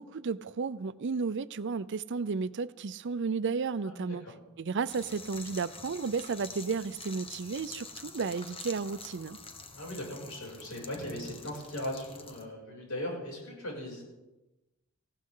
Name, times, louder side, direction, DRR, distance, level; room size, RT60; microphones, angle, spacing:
voice 1, 0.0-4.2 4.6-9.4, right 5 dB, 60° right, 0.5 m, -33 dB
voice 2, 3.8-4.2 9.7-14.0, left 1 dB, 80° left, 6.8 m, -38 dB
sound 1, 4.9-12.4, left 3 dB, 25° left, 1.3 m, -47 dB
19.0 x 16.0 x 3.8 m
head